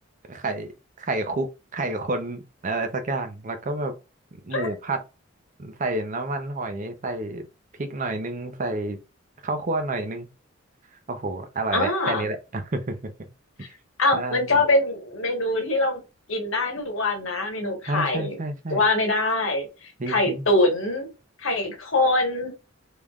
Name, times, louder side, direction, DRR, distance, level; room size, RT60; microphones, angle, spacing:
voice 1, 0.3-3.9 4.3-5.0 5.6-7.5 7.8-9.0 9.4-10.3 11.1-13.1 14.1-14.5 17.8-18.8 20.0-20.4, right 2 dB, 35° right, 0.6 m, -29 dB
voice 2, 11.7-12.3 14.0-16.0 16.3-18.4 18.7-19.7 20.1-21.1 21.4-22.5, left 2 dB, 65° left, 1.3 m, -23 dB
3.5 x 3.3 x 2.3 m
head